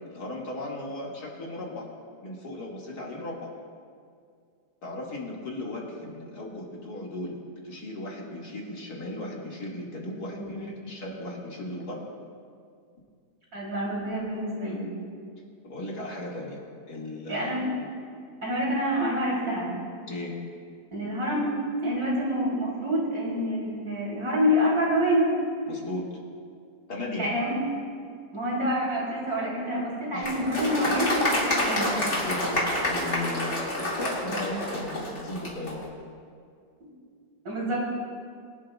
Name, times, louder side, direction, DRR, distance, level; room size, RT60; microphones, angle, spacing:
voice 1, 0.0-1.9 2.2-3.5 4.8-12.0 15.6-16.6 16.9-17.6 20.1-20.3 25.7-26.0 26.9-27.3 30.1-30.3 32.2-35.8, left 1 dB, 75° left, -3 dB, 2.6 m, -36 dB
voice 2, 10.3-10.8 13.5-14.9 17.3-17.7 18.4-19.7 20.9-21.5 21.8-25.3 27.2-27.6 28.3-31.9 33.6-33.7 34.3-34.5 37.5-37.8, equal, 70° right, -5 dB, 3.7 m, -27 dB
Applause, 30.2-35.8, left 1 dB, 45° left, 2.4 m, -28 dB
23.0 x 11.5 x 2.3 m, 2.2 s
omnidirectional pair, 1.7 m